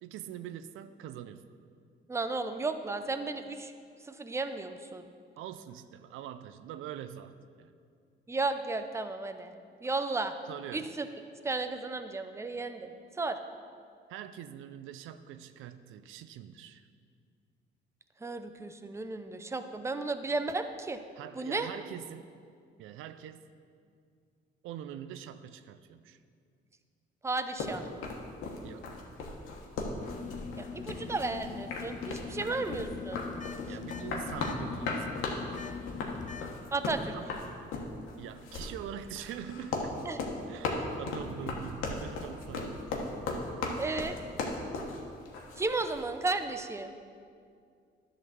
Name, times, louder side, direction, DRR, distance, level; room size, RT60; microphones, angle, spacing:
voice 1, 0.0-1.4 5.4-7.7 10.5-10.9 14.1-16.9 21.2-22.3 22.8-23.4 24.6-26.2 28.6-28.9 33.6-35.2 37.1-37.3 38.2-39.9 40.5-42.9, right 10 dB, 85° right, 11 dB, 0.4 m, -44 dB
voice 2, 2.1-3.7 4.1-5.1 8.3-9.5 9.8-10.4 10.7-11.1 11.4-12.9 13.2-13.4 18.2-21.0 21.4-21.7 27.2-27.9 30.6-33.2 36.7-37.2 40.1-40.2 43.8-44.2 45.6-47.0, right 3 dB, 15° right, 9 dB, 0.5 m, -34 dB
sound 1, 27.6-46.0, left 3 dB, 90° left, 1.2 m, -36 dB
sound 2, 30.0-36.5, left 6 dB, 40° left, 0.5 m, -42 dB
11.0 x 4.0 x 7.0 m, 2.3 s
cardioid pair, 90°, 20 cm